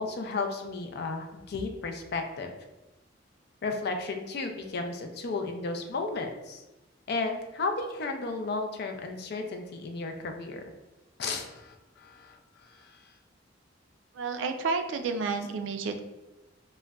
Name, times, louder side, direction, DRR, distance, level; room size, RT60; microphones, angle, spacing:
voice 1, 0.0-2.5 3.6-6.6 7.1-10.6 11.2-13.0, left 3 dB, 60° left, 4 dB, 0.4 m, -34 dB
voice 2, 14.1-16.1, right 4 dB, 80° right, 6 dB, 0.4 m, -31 dB
3.7 x 2.1 x 2.2 m, 1.1 s
head